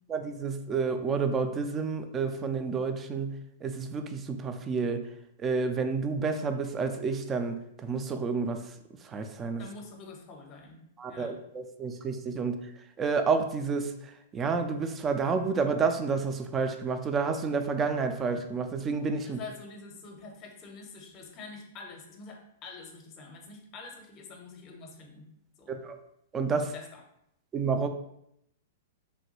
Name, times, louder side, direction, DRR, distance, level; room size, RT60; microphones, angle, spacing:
voice 1, 0.1-5.1 5.4-9.6 11.0-19.4 25.7-26.0 26.3-26.7 27.5-27.9, right 4 dB, 25° right, 7 dB, 0.3 m, -30 dB
voice 2, 9.6-10.8 11.1-11.4 19.2-25.3 25.6-25.8 26.7-26.9, left 4 dB, 35° left, 3 dB, 0.6 m, -46 dB
3.0 x 2.2 x 3.0 m, 0.77 s
hypercardioid pair, 110°, 0 cm